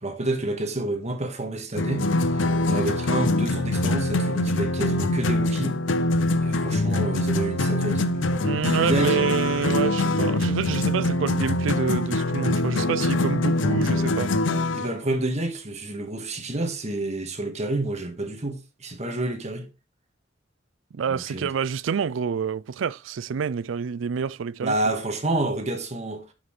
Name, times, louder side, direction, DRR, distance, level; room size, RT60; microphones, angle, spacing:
voice 1, 0.0-5.8 6.4-8.1 8.6-9.2 14.7-19.6 21.1-21.5 24.6-26.2, right 2 dB, 35° right, 1.6 m, -29 dB
sound 1, 1.7-14.9, left 2 dB, 75° left, 0.7 m, -24 dB
voice 2, 8.4-14.3 20.9-24.7, right 6 dB, 85° right, 0.4 m, -27 dB
11.0 x 5.7 x 3.3 m
head